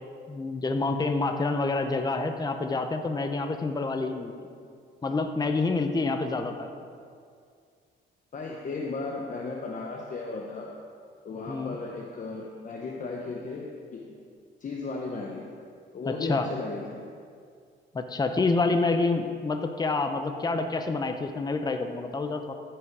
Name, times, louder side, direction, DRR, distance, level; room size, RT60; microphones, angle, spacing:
voice 1, 0.3-4.3 5.0-6.7 11.5-11.8 16.1-16.5 17.9-22.5, left 3 dB, 20° left, 6 dB, 0.7 m, -27 dB
voice 2, 8.3-10.7 11.2-14.0 14.6-15.5 15.9-16.9, left 3 dB, 40° left, -1 dB, 1.0 m, -35 dB
14.5 x 6.1 x 4.7 m, 2.2 s
cardioid pair, 90°, 20 cm